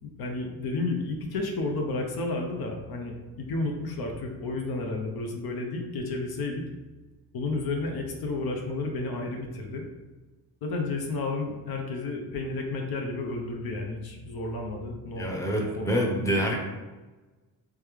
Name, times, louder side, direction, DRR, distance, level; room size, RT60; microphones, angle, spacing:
voice 1, 0.0-6.6 7.3-9.8 10.6-15.3 15.6-16.2, left 2 dB, 70° left, 2 dB, 0.7 m, -32 dB
voice 2, 15.2-16.5, equal, 10° left, -1 dB, 0.6 m, -26 dB
3.3 x 3.1 x 3.5 m, 1.2 s
cardioid pair, 120°, 38 cm